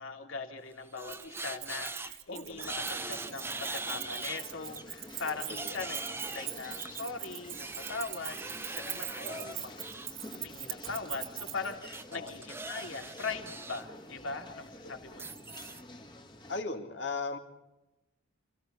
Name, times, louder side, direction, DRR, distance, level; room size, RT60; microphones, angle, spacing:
voice 1, 0.0-9.7 10.3-15.3, left 4 dB, 75° left, 5 dB, 3.2 m, -40 dB
sound 1, 0.6-2.1 2.5-4.4 4.8-10.1 11.8-13.8 14.2-14.4 15.1-15.8, right 3 dB, 10° right, 0.9 m, -41 dB
Keys jangling, 1.1-11.7, right 15 dB, 75° right, 2.1 m, -42 dB
voice 2, 2.3-2.7 5.5-5.9 9.2-9.6 12.1-12.4 14.8-14.9 16.5-17.4, left 3 dB, 60° left, 5 dB, 2.8 m, -38 dB
sound 2, 2.6-16.6, left 1 dB, 20° left, 2.1 m, -49 dB
27.5 x 16.5 x 7.0 m, 0.99 s
head